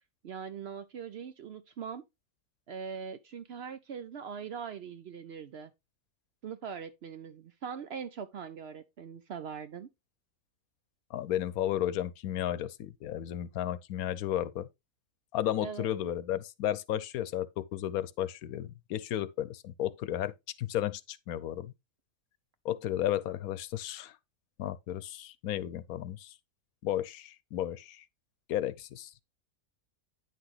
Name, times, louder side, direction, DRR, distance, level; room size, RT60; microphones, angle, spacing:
voice 1, 0.2-2.0 2.7-5.7 6.4-9.9 15.6-15.9, right 7 dB, 60° right, 0.7 m, -41 dB
voice 2, 11.1-14.7 15.3-20.3 20.6-21.7 22.6-24.2 24.6-26.3 26.8-28.0 28.5-29.2, left 12 dB, 85° left, 1.1 m, -33 dB
9.2 x 5.9 x 3.1 m
omnidirectional pair, 1.5 m